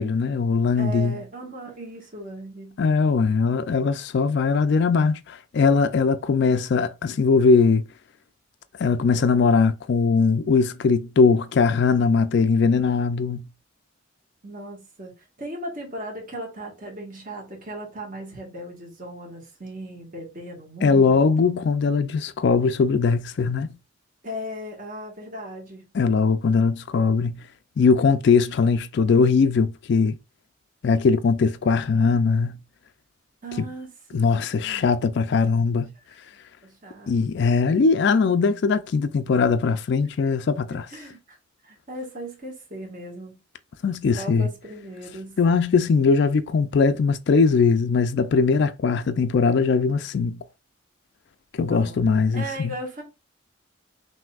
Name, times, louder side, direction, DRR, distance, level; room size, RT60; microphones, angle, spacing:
voice 1, 0.0-1.2 2.8-7.8 8.8-13.4 20.8-23.7 25.9-27.4 27.8-30.2 30.8-32.6 34.1-35.9 37.1-40.9 43.8-44.5 45.4-50.4 51.6-52.7, left 4 dB, 55° left, 0.3 m, -20 dB
voice 2, 0.7-2.8 14.4-21.7 24.2-25.9 33.4-34.9 36.6-37.3 40.7-41.4 41.6-43.4 44.1-45.4 51.6-52.0 52.3-53.0, right 1 dB, 40° right, 1.5 m, -37 dB
5.8 x 2.7 x 2.3 m
head